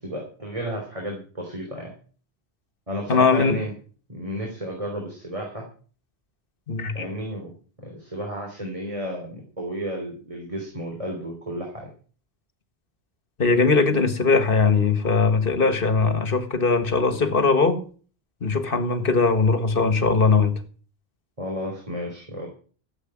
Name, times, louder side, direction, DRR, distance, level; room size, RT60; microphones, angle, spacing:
voice 1, 0.0-1.9 2.9-3.7 4.1-5.6 6.9-7.5 7.8-11.9 21.4-22.5, equal, 35° right, 3.7 m, -32 dB
voice 2, 3.1-3.6 6.7-7.1 13.4-17.8 18.4-20.6, left 4 dB, 60° left, 1.7 m, -20 dB
14.5 x 8.1 x 7.3 m
omnidirectional pair, 1.0 m